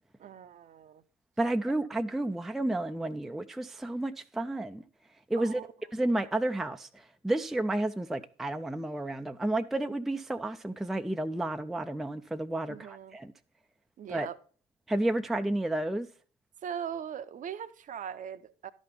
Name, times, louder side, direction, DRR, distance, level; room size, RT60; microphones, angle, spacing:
voice 1, 0.2-1.0 5.4-5.7 12.7-13.2 14.0-14.4 16.6-18.7, right 8 dB, 40° right, 0.6 m, -40 dB
voice 2, 1.4-4.8 5.3-5.6 5.9-13.3 14.1-14.3 14.9-16.1, right 1 dB, ahead, 0.4 m, -31 dB
11.5 x 5.2 x 5.3 m
figure-of-eight pair, 55°, 20 cm